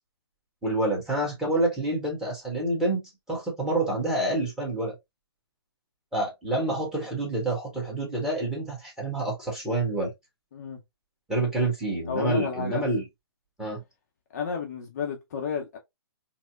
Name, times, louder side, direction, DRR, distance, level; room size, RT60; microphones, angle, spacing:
voice 1, 0.6-4.9 6.1-10.1 11.3-13.0 13.6-13.8, right 2 dB, 5° right, 1.3 m, -28 dB
voice 2, 12.1-12.8 14.3-15.8, left 6 dB, 40° left, 0.6 m, -31 dB
4.1 x 2.1 x 2.3 m
figure-of-eight pair, 125°, 13 cm